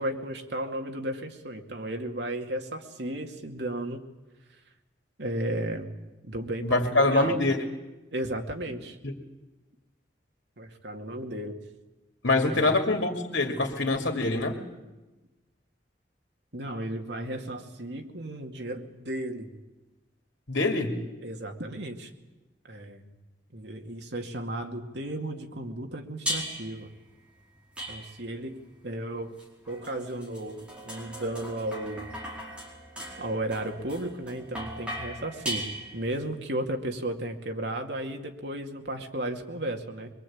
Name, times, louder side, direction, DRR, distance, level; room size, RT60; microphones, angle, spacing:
voice 1, 0.0-4.0 5.2-5.9 6.2-7.4 8.1-9.0 10.6-11.6 12.5-12.8 16.5-19.5 21.2-22.1 22.7-23.1 23.5-26.9 27.9-28.6 28.8-29.3 29.7-32.1 33.2-35.6 35.9-40.1, right 1 dB, 70° right, 3 dB, 2.4 m, -34 dB
voice 2, 6.6-7.6 9.0-9.1 12.2-14.6 20.5-21.0, left 2 dB, 90° left, 3 dB, 2.5 m, -25 dB
sound 1, 26.3-26.8 27.8-28.4 29.4-36.2, equal, 5° right, 4.9 m, -38 dB
23.5 x 23.0 x 8.7 m, 1.1 s
head